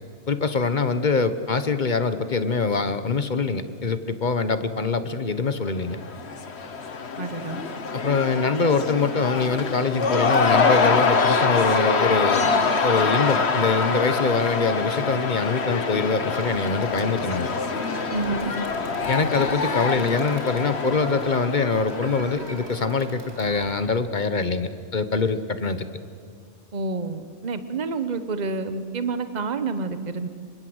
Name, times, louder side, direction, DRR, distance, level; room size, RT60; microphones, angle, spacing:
voice 1, 0.3-6.0 7.9-12.5 12.8-17.5 19.1-25.9, left 4 dB, 45° left, 12 dB, 1.2 m, -24 dB
Cheering / Crowd, 5.8-22.6, left 4 dB, 65° left, 1.6 m, -25 dB
voice 2, 7.2-7.6 18.1-18.5 26.7-30.3, right 4 dB, 40° right, 11 dB, 1.2 m, -28 dB
Crowd, 16.3-23.9, right 2 dB, 65° right, 2.8 m, -40 dB
Telephone, 21.6-22.8, equal, 10° right, 2.4 m, -37 dB
26.5 x 24.0 x 8.0 m, 2.1 s
omnidirectional pair, 1.2 m